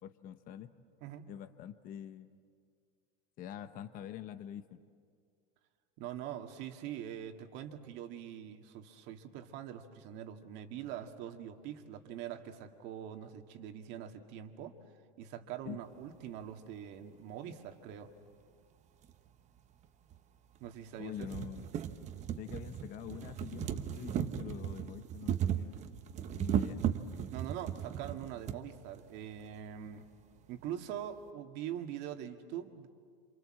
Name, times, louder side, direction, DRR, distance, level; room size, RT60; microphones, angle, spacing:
voice 1, 0.0-0.7 1.3-2.4 3.4-4.8 15.6-15.8 21.0-21.7 22.4-26.0 26.3-26.8, left 10 dB, 45° left, 10 dB, 1.0 m, -45 dB
voice 2, 6.0-14.7 15.2-18.1 20.6-21.3 27.3-30.1 30.5-32.9, right 10 dB, 60° right, 5 dB, 2.0 m, -43 dB
sound 1, 19.0-19.1 20.1-20.2 20.6-20.7 21.0-28.6 29.5-29.6 29.9-30.0, right 9 dB, 35° right, 1.1 m, -36 dB
28.0 x 27.0 x 7.6 m, 2.1 s
supercardioid pair, 145°, 20 cm